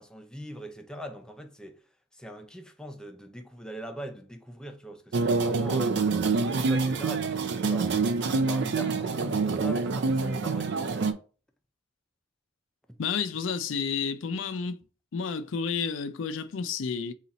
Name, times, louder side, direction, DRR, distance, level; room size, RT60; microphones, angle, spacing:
voice 1, 0.0-1.8 2.2-6.0 6.4-8.0 8.5-11.1 12.9-13.0, equal, 5° left, 0.4 m, -41 dB
sound 1, 5.1-11.1, right 4 dB, 60° right, 0.4 m, -26 dB
voice 2, 13.0-14.8 15.1-17.1, left 6 dB, 70° left, 0.4 m, -31 dB
4.0 x 2.4 x 4.0 m
head